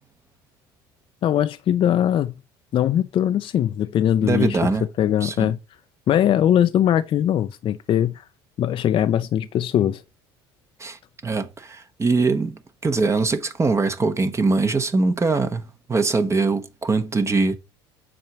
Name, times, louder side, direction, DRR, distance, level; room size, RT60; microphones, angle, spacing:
voice 1, 1.2-2.3 2.7-5.6 6.1-8.2 8.6-10.0, left 10 dB, 45° left, 0.5 m, -21 dB
voice 2, 4.2-4.8 5.2-5.5 10.8-17.6, right 3 dB, 25° right, 0.9 m, -22 dB
7.6 x 2.9 x 5.8 m
hypercardioid pair, 75°, 12 cm